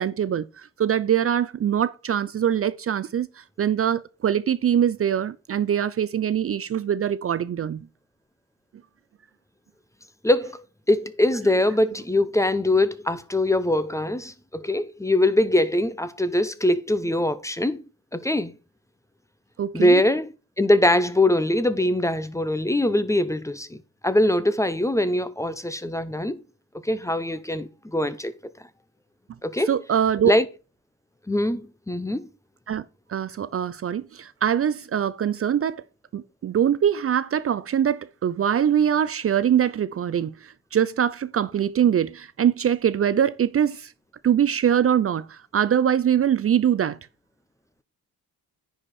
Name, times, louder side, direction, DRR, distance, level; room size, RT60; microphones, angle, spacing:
voice 1, 0.0-7.8 19.6-20.0 29.7-30.3 32.7-32.8 33.1-35.8 36.1-43.9 44.2-47.0, right 9 dB, 40° right, 0.4 m, -23 dB
voice 2, 10.2-17.8 18.1-18.5 19.7-20.3 20.6-23.8 24.0-26.4 26.8-28.3 29.4-29.7 30.3-30.5 31.3-32.3, left 1 dB, 10° left, 0.6 m, -22 dB
9.9 x 5.0 x 4.2 m
cardioid pair, 120°, 36 cm